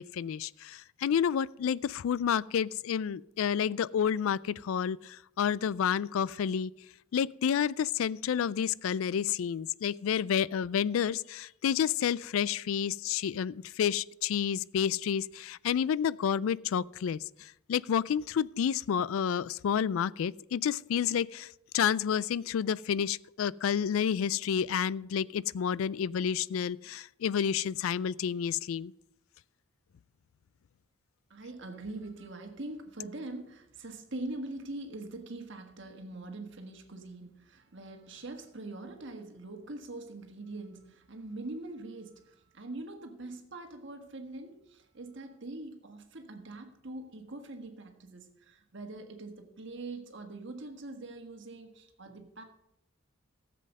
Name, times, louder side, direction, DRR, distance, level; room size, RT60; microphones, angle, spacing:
voice 1, 0.0-6.7 7.1-28.9, left 8 dB, 75° left, 0.3 m, -30 dB
voice 2, 31.3-52.4, right 2 dB, 60° right, 1.5 m, -43 dB
14.0 x 7.7 x 5.4 m
head